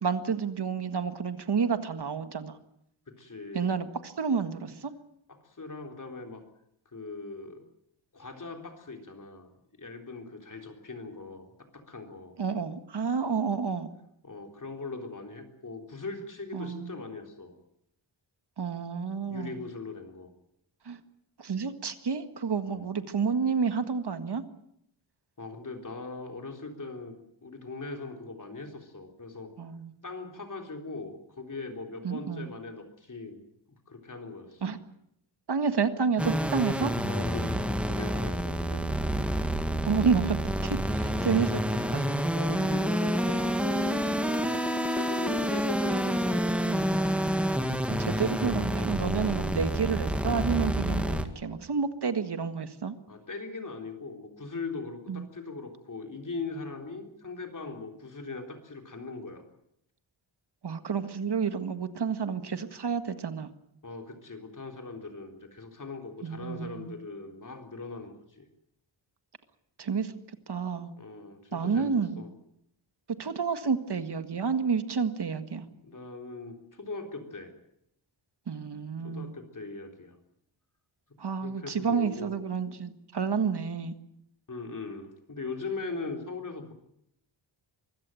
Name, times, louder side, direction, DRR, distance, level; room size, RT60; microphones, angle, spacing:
voice 1, 0.0-2.5 3.5-4.9 12.4-13.9 16.5-16.9 18.6-19.6 20.9-21.0 21.4-24.4 29.6-29.9 32.0-32.5 34.6-34.8 35.5-36.9 39.9-40.4 40.6-41.6 41.9-42.0 48.0-52.9 55.1-55.2 60.6-63.5 66.2-66.9 69.8-70.1 70.5-70.9 71.5-72.2 73.2-75.7 78.5-79.3 81.2-83.9, right 5 dB, 55° right, 10 dB, 1.8 m, -30 dB
voice 2, 3.1-3.7 5.3-6.4 6.9-7.6 8.1-9.5 9.8-12.4 13.4-13.5 14.2-17.6 19.3-20.3 22.7-22.9 25.4-27.2 27.4-29.5 30.0-33.4 33.7-34.7 37.1-37.5 37.8-39.0 41.1-41.6 42.3-47.0 53.1-59.4 63.8-68.5 71.0-72.3 75.8-77.5 79.0-80.2 81.4-82.3 84.5-86.7, left 3 dB, 40° left, 4 dB, 3.8 m, -40 dB
sound 1, 36.2-51.2, equal, 5° right, 1.8 m, -28 dB
24.0 x 15.5 x 9.1 m, 0.77 s
wide cardioid pair, 115°, 48 cm